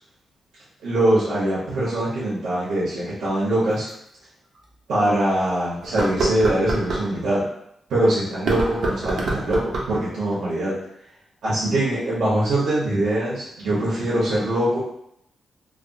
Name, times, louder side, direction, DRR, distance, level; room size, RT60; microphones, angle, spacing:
voice 1, 0.8-3.9 4.9-7.4 7.9-9.6 9.9-10.7 11.4-14.8, right 1 dB, 90° right, -9 dB, 1.0 m, -22 dB
sound 1, 3.9-4.0 4.6-4.7 5.8-7.1 8.3-10.0, right 2 dB, 70° right, 0.6 m, -25 dB
3.3 x 2.0 x 2.6 m, 0.76 s
wide cardioid pair, 130°, 0 cm